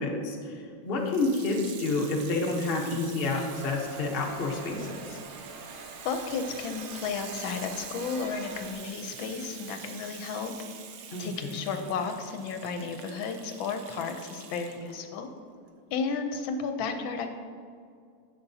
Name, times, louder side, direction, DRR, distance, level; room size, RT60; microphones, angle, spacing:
voice 1, 0.0-5.2 11.1-11.6, left 2 dB, 45° left, 0 dB, 0.8 m, -29 dB
Water tap faucet / Sink (filling or washing), 1.0-15.0 15.7-15.8, right 7 dB, 70° right, 0.9 m, -46 dB
sound 1, 3.5-8.7, right 3 dB, 90° right, 1.8 m, -45 dB
voice 2, 6.0-10.5 11.2-15.3 15.9-17.4, left 5 dB, 75° left, 6 dB, 1.4 m, -33 dB
10.5 x 7.0 x 2.7 m, 2.2 s
omnidirectional pair, 2.2 m